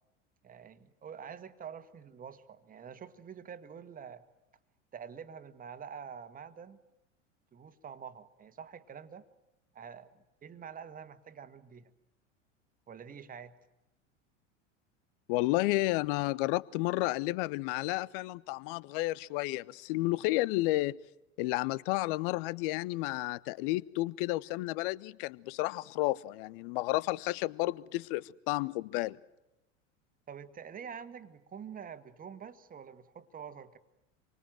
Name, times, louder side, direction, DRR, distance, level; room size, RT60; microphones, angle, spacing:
voice 1, 0.4-4.2 4.9-6.8 7.5-9.3 9.7-10.1 10.4-11.9 12.9-13.5 30.3-33.8, right 7 dB, 20° right, 1.7 m, -46 dB
voice 2, 15.3-21.0 21.4-29.2, left 19 dB, 45° left, 0.9 m, -31 dB
28.0 x 24.5 x 7.7 m
figure-of-eight pair, 80°, 37 cm